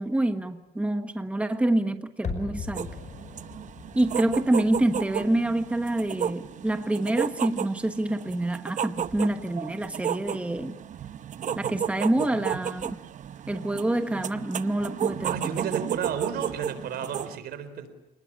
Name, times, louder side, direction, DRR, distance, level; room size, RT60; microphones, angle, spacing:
voice 1, 0.0-2.9 3.9-10.8 11.5-13.0 13.5-15.5, right 1 dB, 5° right, 7 dB, 1.3 m, -27 dB
sound 1, 2.2-7.2 7.4-7.5, left 5 dB, 45° left, 5.3 m, -40 dB
sound 2, 2.7-17.4, right 9 dB, 45° right, 0.9 m, -33 dB
voice 2, 15.2-18.0, right 8 dB, 70° right, 11 dB, 4.3 m, -32 dB
29.0 x 20.0 x 8.7 m, 0.98 s
cardioid pair, 110°, 17 cm